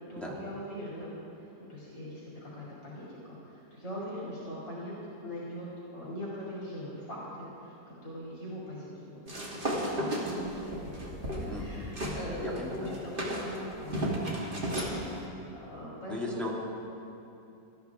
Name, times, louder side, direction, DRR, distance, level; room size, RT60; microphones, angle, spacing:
voice 1, 0.1-1.1 1.7-5.7 5.9-7.7 8.0-9.2 9.5-10.9 11.2-14.1 14.5-14.6 14.9-16.6, equal, 70° left, -7 dB, 3.1 m, -41 dB
sound 1, 9.3-12.2 12.6-15.0, right 1 dB, 30° right, 1.9 m, -34 dB
voice 2, 11.4-11.9 12.4-13.0 16.1-16.6, left 1 dB, ahead, -4 dB, 1.5 m, -37 dB
18.5 x 13.0 x 3.5 m, 2.8 s
omnidirectional pair, 2.0 m